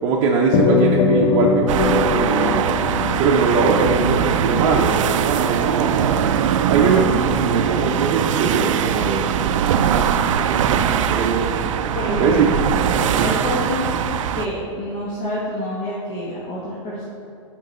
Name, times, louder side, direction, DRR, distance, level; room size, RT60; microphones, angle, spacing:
voice 1, 0.0-2.7 3.2-6.0 6.7-9.3 9.7-10.1 10.3-11.6 12.2-12.5 13.1-13.4, right 4 dB, 45° right, -1 dB, 0.7 m, -21 dB
sound 1, 0.5-5.2, left 4 dB, 75° left, 0.9 m, -21 dB
sound 2, 1.7-14.5, right 8 dB, 80° right, 0.4 m, -21 dB
voice 2, 11.9-12.3 13.2-14.0 14.3-17.1, left 1 dB, 30° left, -7 dB, 1.3 m, -27 dB
7.3 x 4.6 x 4.2 m, 2.6 s
supercardioid pair, 140°, 16 cm